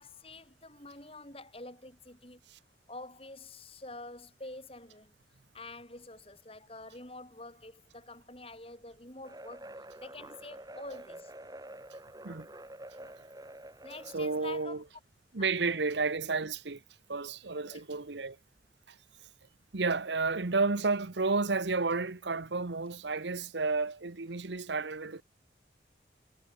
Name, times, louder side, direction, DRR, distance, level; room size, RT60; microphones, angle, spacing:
voice 1, 0.0-2.4 2.9-5.1 5.5-9.7 10.0-11.3 13.0-13.1 13.8-14.8 15.4-15.9 17.7-17.8, left 2 dB, 30° left, 5.7 m, -47 dB
sound 1, 9.2-14.7, right 1 dB, 20° right, 3.1 m, -48 dB
voice 2, 14.1-14.8 15.3-16.8 17.1-18.4 18.9-19.0 19.7-25.2, right 4 dB, 80° right, 1.1 m, -31 dB
head